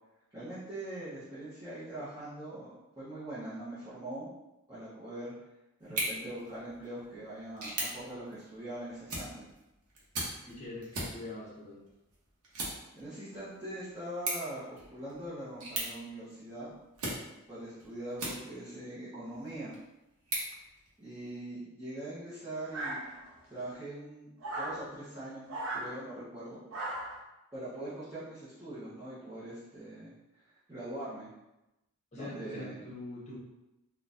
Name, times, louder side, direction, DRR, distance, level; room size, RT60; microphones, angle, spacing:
voice 1, 0.3-4.3 4.7-5.3 5.8-9.5 12.9-16.7 17.5-19.8 21.0-23.0 23.5-25.5 25.7-26.7 27.5-30.1 30.7-31.3 32.1-32.8, right 1 dB, 15° right, -15 dB, 0.8 m, -42 dB
sound 1, 5.8-18.8 19.3-21.4, right 2 dB, 85° right, 0.9 m, -41 dB
voice 2, 10.4-11.8 32.1-33.4, left 2 dB, 30° left, -6 dB, 0.8 m, -43 dB
sound 2, 22.7-23.5 24.4-24.8 25.5-25.9 26.7-27.2, right 1 dB, 60° right, 0.6 m, -37 dB
3.8 x 2.2 x 2.5 m, 0.95 s
head